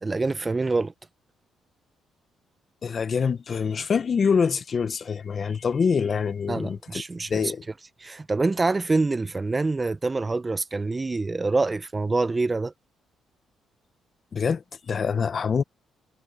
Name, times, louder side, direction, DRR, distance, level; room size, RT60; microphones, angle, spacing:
voice 1, 0.0-0.9 6.5-7.5 8.0-12.7, right 3 dB, 25° right, 0.7 m, -26 dB
voice 2, 2.8-7.0 7.3-7.6 14.3-15.6, left 6 dB, 45° left, 0.9 m, -25 dB
cardioid pair, 90°, 0 cm